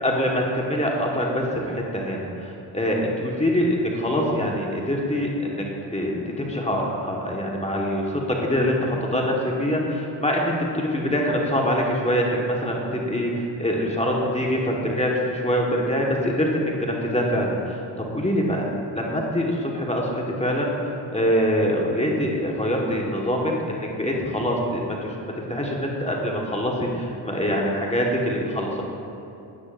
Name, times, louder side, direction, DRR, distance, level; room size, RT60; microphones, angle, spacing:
voice 1, 0.0-5.6 5.9-17.8 18.1-18.7 18.9-25.1 25.5-28.8, equal, 15° left, -2 dB, 1.5 m, -24 dB
12.0 x 9.5 x 2.6 m, 2.8 s
supercardioid pair, 65°, 45 cm